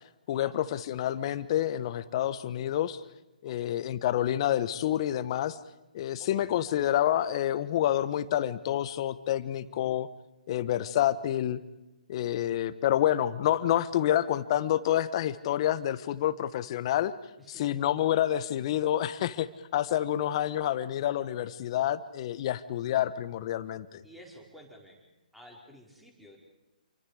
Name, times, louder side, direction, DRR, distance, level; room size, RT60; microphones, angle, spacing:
voice 1, 0.3-3.0 3.4-5.6 5.9-10.1 10.5-11.6 12.1-17.1 17.5-24.0, left 12 dB, 40° left, 14 dB, 1.2 m, -28 dB
voice 2, 3.4-3.8 6.2-6.5 9.7-9.9 17.4-17.8 24.0-25.0 25.3-26.4, equal, ahead, 0 dB, 4.7 m, -52 dB
28.5 x 24.5 x 5.0 m, 1.0 s
figure-of-eight pair, 140°, 5 cm